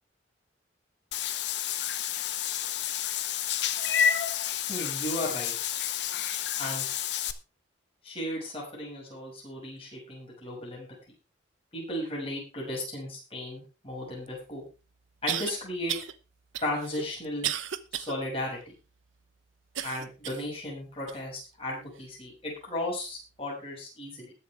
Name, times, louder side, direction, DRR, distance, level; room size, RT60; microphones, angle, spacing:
Meow / Water / Bathtub (filling or washing), 1.1-7.3, left 9 dB, 60° left, 0.9 m, -30 dB
voice 1, 4.7-5.5 6.6-6.9 8.0-10.9 11.7-14.6 15.2-15.9 16.6-17.5 17.9-18.6 19.8-24.3, left 1 dB, 30° left, -3 dB, 6.4 m, -35 dB
sound 1, 14.3-14.4 15.3-15.5 15.9-16.1 16.5-18.1 18.6-18.7 19.8-20.5 21.1-21.2 22.0-22.1, right 10 dB, 85° right, 0.9 m, -33 dB
20.5 x 7.2 x 3.4 m, 0.31 s
head